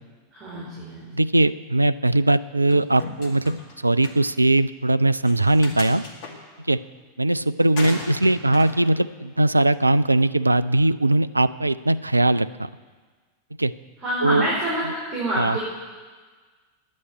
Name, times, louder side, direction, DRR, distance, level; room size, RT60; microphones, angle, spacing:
voice 1, 0.3-1.1 14.0-14.8 15.1-15.6, right 1 dB, 30° right, -7 dB, 4.6 m, -27 dB
voice 2, 1.1-6.0 6.7-6.8 7.2-12.7 13.6-13.7 14.2-14.5 15.4-15.6, right 2 dB, 85° right, 15 dB, 0.3 m, -20 dB
sound 1, 2.7-3.7 4.0-4.2 5.2-6.3 7.8-8.8, left 3 dB, 45° left, 2.1 m, -34 dB
9.8 x 8.6 x 9.2 m, 1.4 s
figure-of-eight pair, 90°, 0 cm